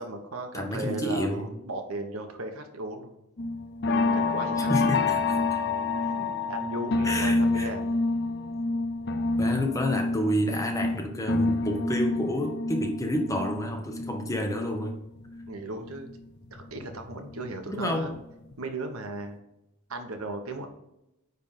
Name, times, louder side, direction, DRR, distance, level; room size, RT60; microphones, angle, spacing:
voice 1, 0.0-3.2 4.1-4.7 5.9-8.0 15.5-16.2 16.5-18.2 18.6-19.4 19.9-20.7, right 2 dB, 80° right, 5 dB, 1.3 m, -36 dB
voice 2, 0.5-1.5 4.7-5.6 7.0-7.7 9.4-15.0 17.7-18.2, equal, 15° left, 3 dB, 1.1 m, -29 dB
sound 1, 3.4-15.5 15.9-17.5 17.9-18.2 18.5-18.6, left 3 dB, 50° left, 0.6 m, -28 dB
9.5 x 3.6 x 5.6 m, 0.88 s
head